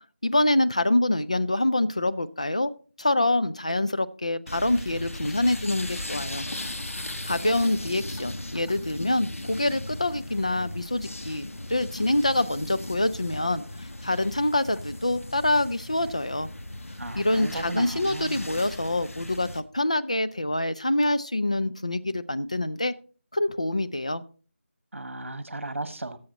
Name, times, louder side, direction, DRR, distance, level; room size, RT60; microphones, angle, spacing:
voice 1, 0.2-2.7 3.0-6.5 7.3-16.5 17.1-22.9 23.3-24.2, left 1 dB, 30° left, 13 dB, 0.4 m, -26 dB
sound 1, 4.5-19.6, left 1 dB, 85° left, 1.3 m, -37 dB
voice 2, 17.0-18.5 24.9-26.2, right 2 dB, 70° right, 12 dB, 1.4 m, -35 dB
14.0 x 7.1 x 4.0 m, 0.38 s
figure-of-eight pair, 180°, 7 cm